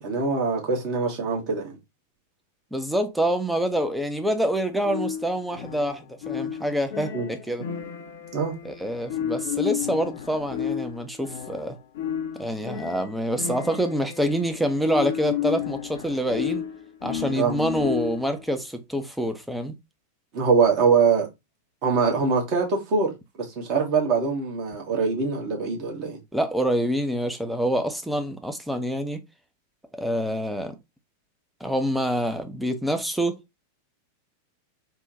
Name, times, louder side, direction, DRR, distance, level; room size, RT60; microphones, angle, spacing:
voice 1, 0.0-1.8 7.1-7.3 8.3-8.5 17.3-17.5 20.3-21.3 21.8-23.1 23.6-26.2, right 5 dB, 40° right, 1.1 m, -23 dB
voice 2, 2.7-7.7 8.6-11.8 12.4-16.6 17.0-19.7 26.3-29.2 29.9-30.8 31.6-33.4, equal, ahead, 0.5 m, -26 dB
sound 1, 4.8-18.4, left 9 dB, 55° left, 0.5 m, -32 dB
3.5 x 2.1 x 2.7 m
figure-of-eight pair, 90°, 0 cm